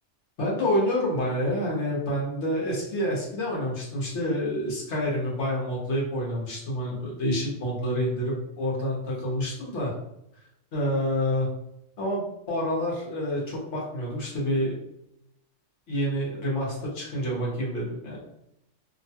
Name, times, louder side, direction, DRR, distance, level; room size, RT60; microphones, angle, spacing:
voice 1, 0.4-9.9 10.7-11.5 12.0-14.7 15.9-18.2, equal, 70° left, -4 dB, 1.2 m, -28 dB
2.9 x 2.2 x 2.7 m, 0.81 s
omnidirectional pair, 1.3 m